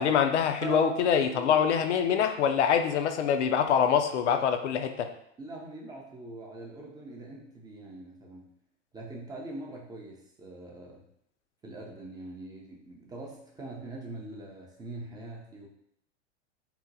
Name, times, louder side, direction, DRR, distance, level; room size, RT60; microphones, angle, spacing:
voice 1, 0.0-5.1, left 8 dB, 75° left, 7 dB, 0.5 m, -25 dB
sound 1, 0.6-2.4, right 7 dB, 75° right, 0.5 m, -38 dB
voice 2, 5.4-8.5 8.9-11.0 11.6-15.7, right 2 dB, 10° right, -2 dB, 0.4 m, -43 dB
2.8 x 2.1 x 3.8 m, 0.73 s
hypercardioid pair, 100°, 36 cm